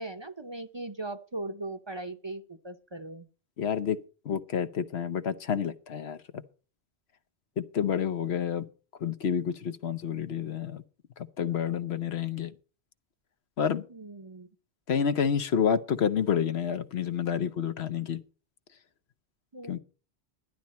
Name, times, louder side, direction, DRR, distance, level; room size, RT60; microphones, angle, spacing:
voice 1, 0.0-3.3 13.9-14.5 19.5-19.8, right 2 dB, 30° right, 0.7 m, -39 dB
voice 2, 3.6-4.0 4.2-6.4 7.6-8.6 9.0-10.8 11.4-12.5 13.6-13.8 14.9-18.2 19.7-19.8, left 7 dB, 80° left, 1.1 m, -29 dB
12.0 x 10.5 x 4.2 m
omnidirectional pair, 1.1 m